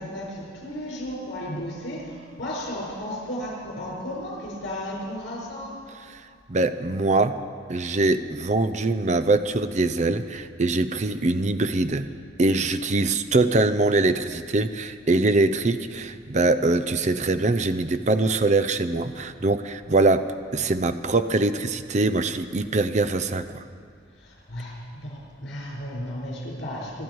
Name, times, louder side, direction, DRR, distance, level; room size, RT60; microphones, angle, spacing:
voice 1, 0.0-5.8 24.2-27.0, equal, 70° left, -2 dB, 5.6 m, -34 dB
voice 2, 6.5-7.4 7.7-12.1 12.4-20.3 20.5-23.6, right 2 dB, 35° right, 11 dB, 0.6 m, -23 dB
25.0 x 12.0 x 4.7 m, 2.1 s
head